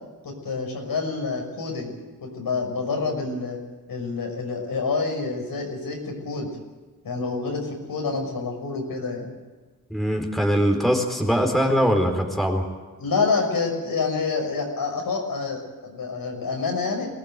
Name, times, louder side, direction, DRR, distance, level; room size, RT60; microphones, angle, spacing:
voice 1, 0.2-3.6 3.9-6.5 7.0-9.3 13.0-17.1, left 4 dB, 80° left, 2 dB, 6.1 m, -27 dB
voice 2, 9.9-12.6, equal, ahead, 3 dB, 4.3 m, -22 dB
23.5 x 18.0 x 9.1 m, 1.3 s
wide cardioid pair, 90°, 35 cm